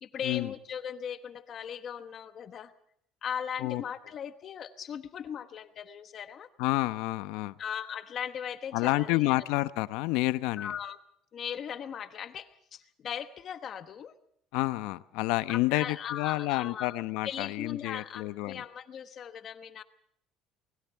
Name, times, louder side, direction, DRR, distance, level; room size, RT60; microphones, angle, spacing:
voice 1, 0.0-2.7 3.2-6.5 7.6-9.4 10.6-11.0 11.3-14.1 15.5-17.0 17.2-19.8, left 8 dB, 35° left, 11 dB, 1.1 m, -38 dB
voice 2, 6.6-7.5 8.7-10.7 14.5-18.6, left 19 dB, 80° left, 15 dB, 0.9 m, -29 dB
29.5 x 21.0 x 4.6 m, 0.71 s
cardioid pair, 175°, 0 cm